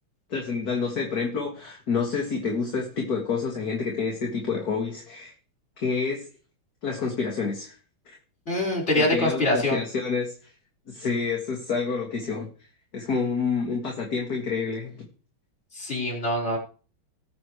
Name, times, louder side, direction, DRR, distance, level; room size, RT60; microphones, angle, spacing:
voice 1, 0.3-5.3 5.8-6.2 6.8-7.7 8.1-8.2 9.0-10.3 10.9-12.5 12.9-15.1, left 5 dB, 50° left, -1 dB, 2.4 m, -28 dB
voice 2, 8.5-9.8 15.7-16.6, left 1 dB, 30° left, -1 dB, 4.5 m, -24 dB
19.5 x 7.2 x 3.2 m, 0.37 s
omnidirectional pair, 2.2 m